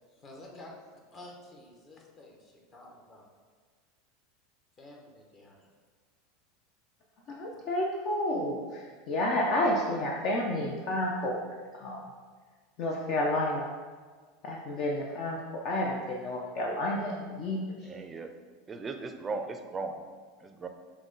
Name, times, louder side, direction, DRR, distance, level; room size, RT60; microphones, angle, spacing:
voice 1, 0.2-0.7 1.1-3.3 4.8-5.7, left 1 dB, 35° left, -1 dB, 0.9 m, -50 dB
voice 2, 7.3-12.0 12.8-13.7 14.4-15.4 15.6-17.6, left 1 dB, 50° left, -1 dB, 0.5 m, -30 dB
voice 3, 17.9-18.3 18.7-20.0 20.4-20.7, right 3 dB, 20° right, 6 dB, 0.4 m, -37 dB
5.8 x 2.2 x 3.9 m, 1.5 s
supercardioid pair, 110°, 0 cm